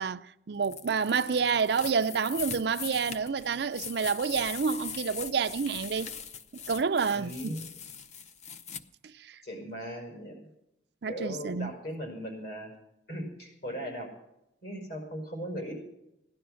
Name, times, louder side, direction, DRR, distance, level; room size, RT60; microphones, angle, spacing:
voice 1, 0.0-6.1 6.5-7.6 9.2-9.4 11.0-11.7, right 5 dB, 65° right, 0.5 m, -29 dB
sound 1, 0.6-8.8, left 7 dB, 40° left, 0.6 m, -41 dB
voice 2, 7.1-7.7 9.4-10.5 11.0-12.7 13.1-14.1 14.6-15.7, equal, 60° left, 5.6 m, -38 dB
16.5 x 11.5 x 6.3 m
head